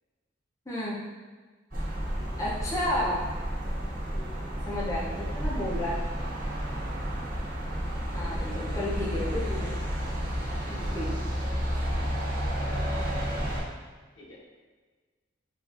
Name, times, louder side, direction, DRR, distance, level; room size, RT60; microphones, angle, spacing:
voice 1, 0.7-1.0 2.4-3.2 4.7-6.0 8.1-9.7 10.7-11.1, left 1 dB, 15° left, -6 dB, 0.5 m, -32 dB
sound 1, 1.7-13.6, equal, 45° right, 1.3 m, -31 dB
voice 2, 2.0-2.5 4.1-4.7 8.1-9.8 10.6-11.0 12.6-13.8 14.2-14.4, left 1 dB, 90° left, -4 dB, 0.9 m, -47 dB
4.6 x 2.4 x 2.4 m, 1.4 s
head